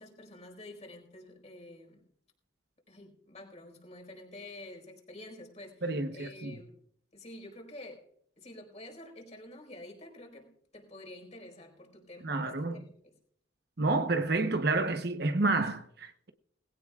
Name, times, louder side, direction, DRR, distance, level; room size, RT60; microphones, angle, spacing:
voice 1, 0.0-2.0 2.9-6.8 7.1-8.0 8.4-13.1, left 1 dB, 35° left, 4.7 m, -49 dB
voice 2, 5.8-6.6 12.2-12.8 13.8-16.3, right 3 dB, 55° right, 1.0 m, -29 dB
20.5 x 17.0 x 2.4 m
head